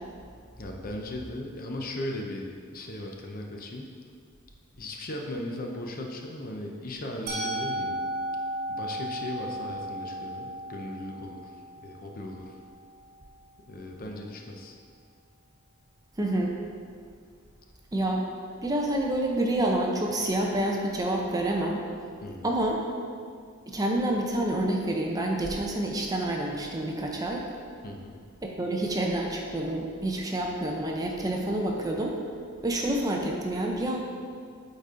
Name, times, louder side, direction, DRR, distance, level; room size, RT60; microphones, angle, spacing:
voice 1, 0.6-3.9 4.7-8.0 8.7-11.5 11.8-12.6 13.7-14.8 22.2-22.5 27.8-28.2, left 1 dB, 40° left, 1 dB, 0.6 m, -37 dB
Musical instrument, 7.3-13.2, right 1 dB, 45° right, 1.0 m, -35 dB
voice 2, 16.2-16.6 17.9-18.2 18.6-21.8 22.4-22.8 23.7-27.4 28.4-32.2 32.6-34.0, right 1 dB, 15° right, 0 dB, 0.5 m, -28 dB
8.3 x 4.2 x 3.7 m, 2.1 s
head